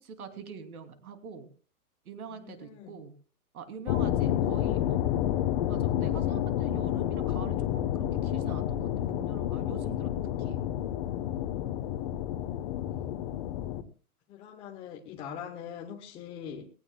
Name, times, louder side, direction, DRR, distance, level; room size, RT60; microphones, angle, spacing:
voice 1, 0.0-1.5 2.1-3.1 3.5-5.1 5.7-10.1 10.4-10.6 12.9-13.2, right 6 dB, 70° right, 7 dB, 3.1 m, -45 dB
voice 2, 2.3-3.0 14.3-16.7, left 8 dB, 15° left, 0 dB, 0.7 m, -42 dB
sound 1, 3.9-13.8, left 11 dB, 30° left, 1.0 m, -30 dB
19.5 x 17.5 x 2.2 m, 0.38 s
hypercardioid pair, 155°, 45 cm